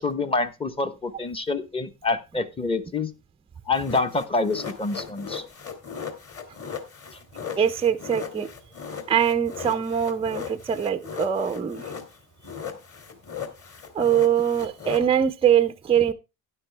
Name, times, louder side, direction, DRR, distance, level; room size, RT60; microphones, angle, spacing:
voice 1, 0.0-3.1 3.7-5.4, left 3 dB, 15° left, 11 dB, 0.9 m, -27 dB
sound 1, 3.7-12.2 12.4-15.0, left 7 dB, 35° left, 2.6 m, -37 dB
voice 2, 7.6-8.5 9.1-11.8 13.9-16.1, right 9 dB, 15° right, 11 dB, 0.6 m, -22 dB
12.5 x 10.0 x 3.3 m, 0.26 s
cardioid pair, 130°, 42 cm